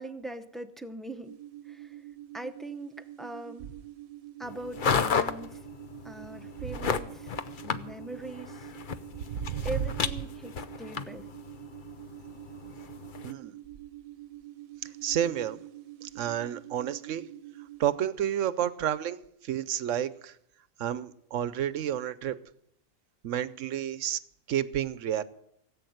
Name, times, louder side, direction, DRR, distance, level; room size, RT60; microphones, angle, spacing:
voice 1, 0.0-1.4 1.6-2.0 2.3-3.7 4.4-5.6 6.0-8.7 9.6-11.3, right 1 dB, ahead, 0.5 m, -41 dB
sound 1, 1.2-17.9, right 15 dB, 85° right, 1.3 m, -47 dB
sound 2, 4.4-13.3, left 6 dB, 45° left, 0.8 m, -34 dB
voice 2, 9.3-9.7 13.2-13.5 15.0-15.6 16.0-17.2 17.8-20.3 20.8-22.4 23.2-24.2 24.5-25.2, right 10 dB, 70° right, 1.0 m, -30 dB
17.5 x 8.5 x 7.9 m
omnidirectional pair, 1.4 m